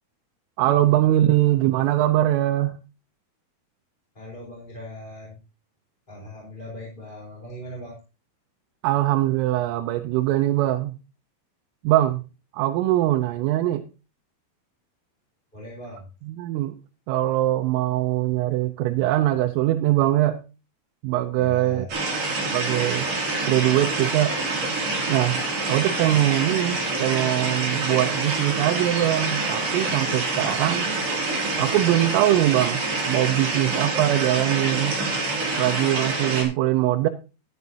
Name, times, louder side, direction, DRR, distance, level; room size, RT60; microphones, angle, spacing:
voice 1, 0.6-2.8 8.8-11.0 11.8-12.2 12.5-13.8 16.2-16.8 17.1-20.4 21.0-21.9 22.5-23.1 23.5-24.4 25.1-25.4 25.7-30.9 31.6-35.0 35.6-37.1, right 14 dB, 90° right, 6 dB, 3.3 m, -22 dB
voice 2, 4.2-5.4 6.1-7.9 15.5-16.0 21.4-21.9, equal, 10° left, -4 dB, 3.4 m, -39 dB
sound 1, 21.9-36.4, right 3 dB, 45° right, 5.3 m, -26 dB
13.5 x 11.5 x 2.8 m, 0.32 s
omnidirectional pair, 5.7 m